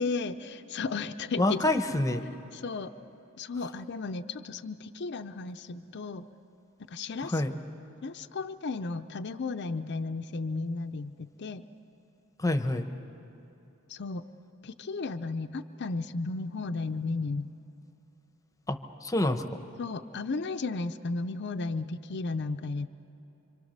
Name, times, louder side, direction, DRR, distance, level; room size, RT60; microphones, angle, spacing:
voice 1, 0.0-1.6 2.5-2.9 3.4-6.3 6.9-7.4 8.0-11.6 13.9-14.2 14.6-17.5 19.8-22.9, left 3 dB, 50° left, 8 dB, 0.6 m, -34 dB
voice 2, 1.4-2.2 7.2-7.5 12.4-12.9 18.7-19.6, left 1 dB, 15° left, 9 dB, 0.9 m, -27 dB
26.5 x 25.5 x 6.6 m, 3.0 s
head